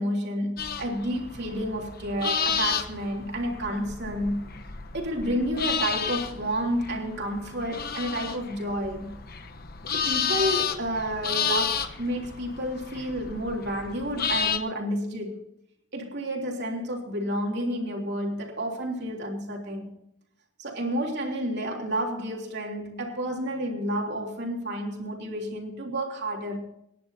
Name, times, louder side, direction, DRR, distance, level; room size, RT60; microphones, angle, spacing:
voice 1, 0.0-4.5 4.9-9.1 9.9-15.5 15.9-19.9 20.6-26.7, equal, 50° right, 3.3 m, -30 dB
sound 1, 0.6-14.6, left 7 dB, 45° left, 1.0 m, -31 dB
27.0 x 11.0 x 2.8 m
head